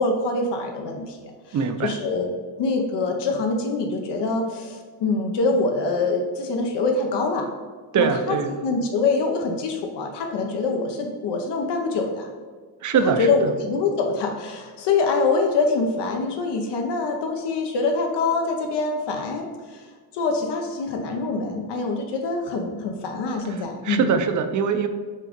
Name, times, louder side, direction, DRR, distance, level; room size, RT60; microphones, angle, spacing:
voice 1, 0.0-2.3 2.6-7.5 7.9-12.3 13.0-19.9 20.1-24.1, left 3 dB, 80° left, 2 dB, 0.9 m, -25 dB
voice 2, 1.5-1.9 7.9-8.5 12.8-13.5 23.8-24.9, right 6 dB, 45° right, 8 dB, 0.6 m, -22 dB
5.5 x 3.7 x 5.1 m, 1.5 s
cardioid pair, 160°, 42 cm